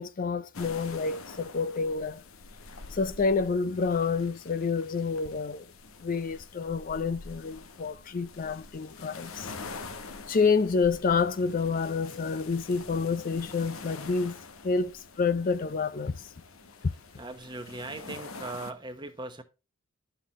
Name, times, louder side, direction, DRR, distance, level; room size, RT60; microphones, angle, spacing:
voice 1, 0.0-2.2 2.9-5.7 6.0-9.5 10.3-14.3 14.6-16.3 16.8-16.9, left 4 dB, 40° left, 0.4 m, -28 dB
sound 1, 0.5-18.7, left 4 dB, 80° left, 0.9 m, -46 dB
voice 2, 17.2-19.4, right 2 dB, 20° right, 1.0 m, -39 dB
12.0 x 5.7 x 3.0 m
head